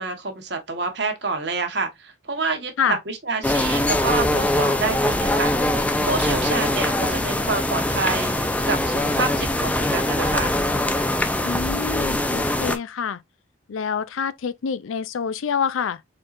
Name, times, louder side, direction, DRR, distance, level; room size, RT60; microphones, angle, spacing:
voice 1, 0.0-5.5 6.0-10.5, right 4 dB, 60° right, 1.2 m, -28 dB
sound 1, 3.4-12.8, left 1 dB, 5° left, 0.3 m, -22 dB
sound 2, 3.6-10.7, left 1 dB, 40° left, 1.1 m, -40 dB
voice 2, 11.4-13.2 13.7-16.0, left 6 dB, 90° left, 0.4 m, -26 dB
4.4 x 3.7 x 2.5 m
head